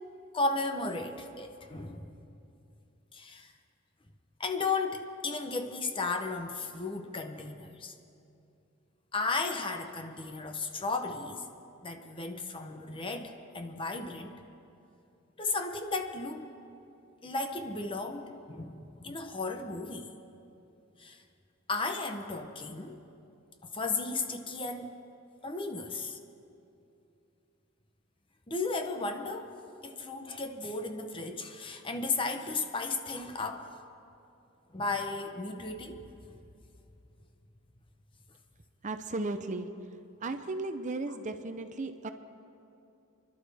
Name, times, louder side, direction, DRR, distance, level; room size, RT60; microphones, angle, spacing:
voice 1, 0.3-2.2 3.1-3.5 4.4-7.9 9.1-11.5 11.8-14.4 15.4-16.5 17.2-20.1 21.0-21.2 21.7-23.0 23.6-24.9 25.4-26.2 28.5-29.6 29.8-33.8 34.7-36.4, left 3 dB, 25° left, 6 dB, 0.8 m, -35 dB
voice 2, 38.8-39.7 40.2-42.1, right 2 dB, 35° right, 8 dB, 0.6 m, -35 dB
28.0 x 12.0 x 3.5 m, 2.7 s
head